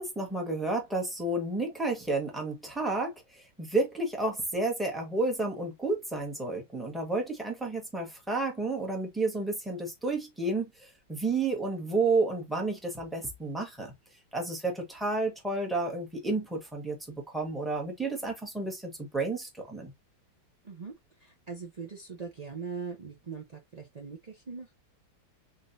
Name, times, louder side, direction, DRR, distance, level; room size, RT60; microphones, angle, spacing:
voice 1, 0.0-3.1 3.6-10.7 11.1-13.9 14.3-19.9, right 2 dB, ahead, 1.1 m, -31 dB
voice 2, 21.2-24.7, right 5 dB, 50° right, 0.4 m, -41 dB
3.8 x 3.7 x 2.6 m
omnidirectional pair, 2.1 m